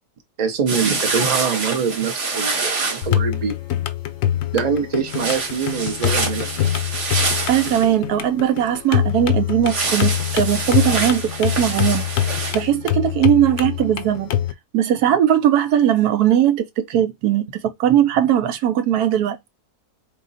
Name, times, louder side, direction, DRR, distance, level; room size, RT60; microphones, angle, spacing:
voice 1, 0.4-3.5 4.5-6.5, right 6 dB, 35° right, 0.7 m, -23 dB
sound 1, 0.7-3.1 5.1-7.9 9.7-12.6, right 3 dB, 50° right, 1.3 m, -26 dB
sound 2, 3.0-14.5, left 11 dB, 65° left, 0.9 m, -24 dB
voice 2, 7.5-12.1 12.5-14.3 14.7-19.4, right 10 dB, 80° right, 1.2 m, -19 dB
3.8 x 2.9 x 4.0 m
omnidirectional pair, 1.7 m